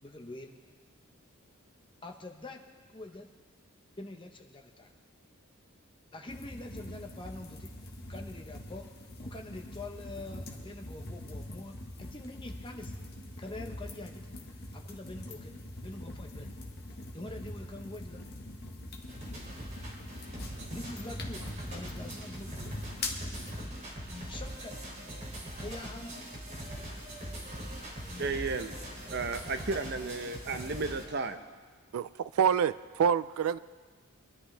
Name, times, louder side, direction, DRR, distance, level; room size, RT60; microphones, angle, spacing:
voice 1, 0.0-0.6 2.0-2.6 2.9-3.3 4.0-4.9 6.1-8.9 9.2-13.0 13.4-16.5 17.1-18.2 20.7-21.4 21.7-22.7 24.3-24.7 25.6-26.3, left 2 dB, 25° left, 3 dB, 1.0 m, -45 dB
sound 1, 6.3-23.7, left 1 dB, 45° left, 1.5 m, -43 dB
sound 2, 19.0-31.0, equal, 35° right, 3.1 m, -42 dB
voice 2, 28.2-28.7 29.1-31.4, right 3 dB, 50° right, 8 dB, 0.8 m, -33 dB
voice 3, 31.9-33.6, right 7 dB, 80° right, 16 dB, 0.3 m, -27 dB
24.0 x 11.0 x 3.4 m, 1.5 s
head